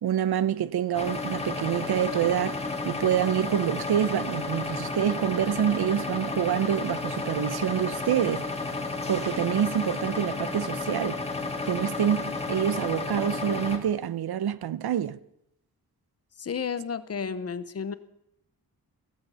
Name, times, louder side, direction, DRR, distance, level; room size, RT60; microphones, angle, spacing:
voice 1, 0.0-2.6 2.8-8.4 9.1-11.2 11.7-15.2, right 10 dB, 90° right, 0.8 m, -27 dB
sound 1, 0.9-13.8, left 3 dB, 15° left, 1.8 m, -32 dB
voice 2, 16.4-17.9, left 6 dB, 40° left, 0.8 m, -32 dB
16.0 x 15.0 x 5.6 m
wide cardioid pair, 180°, 37 cm